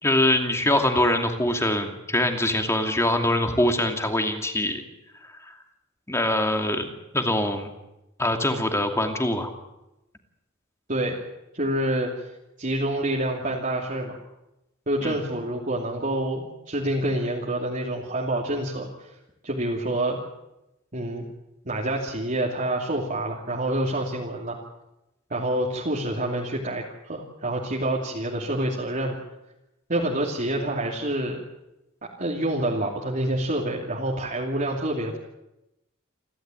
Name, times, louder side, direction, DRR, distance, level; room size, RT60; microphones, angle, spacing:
voice 1, 0.0-4.8 5.2-5.5 6.1-6.9 7.1-7.7 8.2-9.5 15.0-15.2, left 1 dB, 15° left, 5 dB, 2.6 m, -23 dB
voice 2, 10.9-11.2 11.5-12.1 12.6-14.2 14.9-19.1 19.4-20.2 20.9-21.2 21.6-24.6 25.3-29.2 29.9-31.4 32.2-35.2, right 1 dB, 40° right, -3 dB, 2.8 m, -27 dB
29.0 x 12.5 x 9.1 m, 0.92 s
head